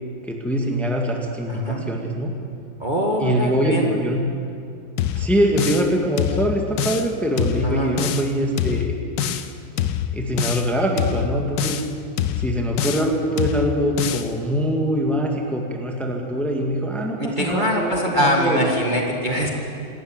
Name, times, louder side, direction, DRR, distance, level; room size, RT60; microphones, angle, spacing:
voice 1, 0.2-2.3 3.2-4.2 5.1-8.9 10.1-11.8 12.4-18.7, right 1 dB, ahead, 1 dB, 2.0 m, -23 dB
voice 2, 1.5-1.9 2.8-3.9 7.6-8.0 17.2-19.5, equal, 25° right, -1 dB, 2.0 m, -23 dB
sound 1, 5.0-5.9 6.2-7.1 7.4-8.3 8.6-9.5 9.8-10.7 11.0-11.9 12.2-13.1 13.4-14.3, left 10 dB, 65° left, 1.5 m, -25 dB
27.0 x 13.5 x 9.1 m, 2.4 s
omnidirectional pair, 2.2 m